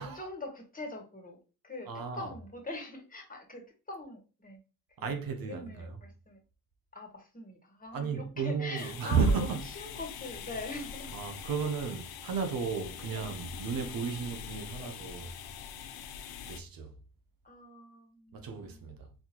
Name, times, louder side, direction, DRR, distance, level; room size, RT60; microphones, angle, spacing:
voice 1, 0.0-1.4 1.6-4.6 5.0-5.2 5.4-6.4 6.9-11.1 11.8-12.0 13.0-13.2 14.8-14.9 17.4-18.9, left 2 dB, 25° left, 1.4 m, -43 dB
voice 2, 1.9-2.3 5.0-6.0 7.9-9.7 11.1-15.3 16.4-16.9 18.3-19.1, right 5 dB, 75° right, 0.8 m, -33 dB
sound 1, 8.8-16.6, left 8 dB, 90° left, 0.6 m, -44 dB
4.2 x 2.8 x 2.9 m
cardioid pair, 105°, 36 cm